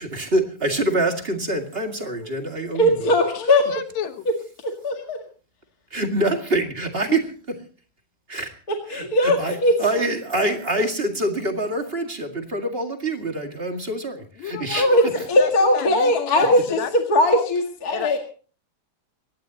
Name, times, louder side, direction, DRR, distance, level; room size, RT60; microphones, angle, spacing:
voice 1, 0.0-3.1 5.9-7.6 8.3-8.5 8.9-14.9, right 1 dB, 25° right, 4 dB, 1.8 m, -25 dB
voice 2, 2.7-3.7 4.6-5.2 8.7-9.8 14.8-18.2, left 1 dB, 35° left, 3 dB, 2.0 m, -20 dB
voice 3, 3.4-4.3 14.4-16.9 17.9-18.2, left 7 dB, 65° left, 9 dB, 2.5 m, -31 dB
23.0 x 18.0 x 2.9 m, 0.39 s
omnidirectional pair, 3.5 m